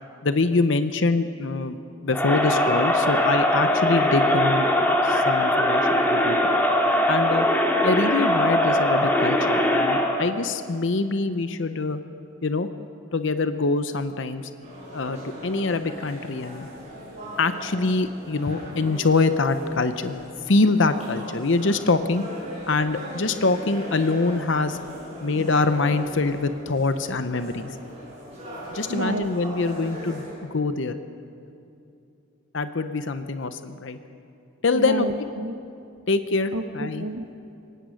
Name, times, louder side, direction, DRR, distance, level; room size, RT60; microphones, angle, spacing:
voice 1, 0.2-4.7 5.0-6.4 7.1-7.5 7.8-12.0 12.4-12.7 13.1-14.5 14.9-16.7 17.4-20.2 20.5-22.2 22.7-24.8 25.2-27.8 28.7-30.9 32.5-34.0 34.6-35.1 36.1-37.0, left 3 dB, 60° left, 10 dB, 0.7 m, -24 dB
Crowd, 2.1-10.2, left 1 dB, 10° left, 2.0 m, -21 dB
sound 1, 14.6-30.3, equal, 30° right, 7.3 m, -39 dB
voice 2, 28.9-29.3 34.7-35.5 36.5-37.4, right 1 dB, 80° right, 6 dB, 1.0 m, -30 dB
23.0 x 18.5 x 6.4 m, 2.6 s
head